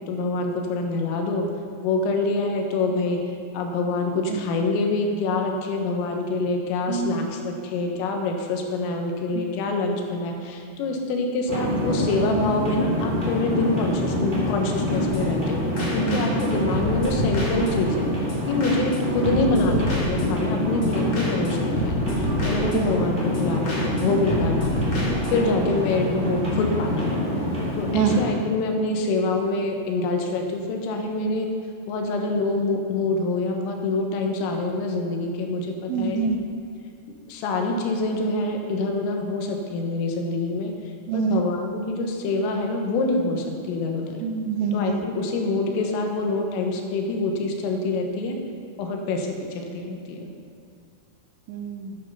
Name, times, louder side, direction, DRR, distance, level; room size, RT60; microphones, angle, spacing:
voice 1, 0.1-1.5 1.8-3.2 3.5-15.7 15.9-18.1 18.5-22.1 22.4-24.9 25.3-27.2 27.8-31.5 31.9-36.2 37.3-40.7 41.1-44.2 44.7-48.4 48.8-50.3, left 2 dB, 90° left, 3 dB, 3.8 m, -26 dB
voice 2, 6.9-7.2 9.3-9.4 16.0-16.3 19.5-19.6 22.0-22.2 22.7-23.0 27.9-28.2 35.9-36.4 41.1-41.4 44.2-45.0 51.5-52.0, right 6 dB, 80° right, 6 dB, 3.1 m, -26 dB
Water milll - millstone and gears, 11.5-28.2, left 1 dB, 20° right, 1.3 m, -26 dB
sound 1, 14.9-15.5 15.8-16.5 16.7-18.0 18.3-18.4 18.6-19.0 19.2-20.6 20.8-20.9 21.1-21.5 21.8-23.1 23.3-23.4 23.7-24.0 24.3-25.5, left 1 dB, 40° left, 2.5 m, -29 dB
10.5 x 9.9 x 5.5 m, 2.5 s
omnidirectional pair, 5.7 m